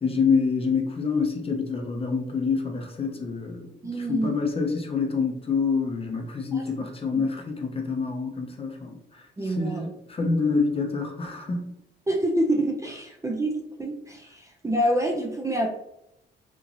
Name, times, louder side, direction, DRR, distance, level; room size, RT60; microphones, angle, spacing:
voice 1, 0.0-11.8, left 5 dB, 30° left, 3 dB, 0.6 m, -27 dB
voice 2, 3.8-4.4 6.5-6.6 7.1-7.2 9.4-9.9 12.1-15.7, right 1 dB, 15° right, 0 dB, 0.5 m, -27 dB
3.0 x 2.5 x 2.5 m, 0.81 s
cardioid pair, 90°, 20 cm